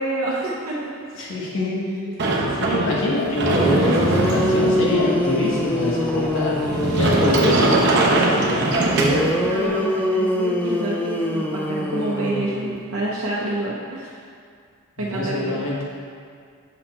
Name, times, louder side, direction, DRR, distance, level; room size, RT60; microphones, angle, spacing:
voice 1, 0.0-1.0 2.1-2.2 7.0-7.7 9.0-14.2 15.0-15.6, right 1 dB, 80° right, -6 dB, 0.8 m, -28 dB
voice 2, 1.2-2.1 2.6-6.6 6.9-8.8 15.0-15.8, left 2 dB, 60° left, -5 dB, 1.3 m, -25 dB
Sliding door, 2.2-9.7, right 2 dB, 50° right, 0.8 m, -22 dB
sound 1, 3.5-7.7 9.0-13.0, equal, 5° left, 0.4 m, -24 dB
6.4 x 4.3 x 4.3 m, 2.2 s
head